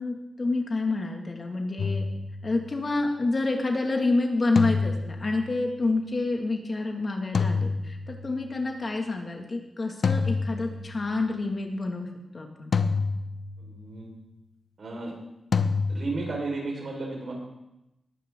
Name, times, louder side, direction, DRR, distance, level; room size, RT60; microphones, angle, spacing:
voice 1, 0.0-2.1 2.4-12.1 12.3-12.7, left 3 dB, 45° left, 2 dB, 2.3 m, -28 dB
sound 1, 1.8-2.8 4.6-5.7 7.3-8.5 10.0-11.2 12.7-13.9 15.5-16.4, left 4 dB, 65° left, 0.8 m, -28 dB
voice 2, 13.6-14.1 14.8-15.1 15.9-17.3, right 3 dB, 60° right, 0 dB, 4.9 m, -33 dB
20.5 x 9.7 x 3.9 m, 0.90 s
cardioid pair, 65°, 0 cm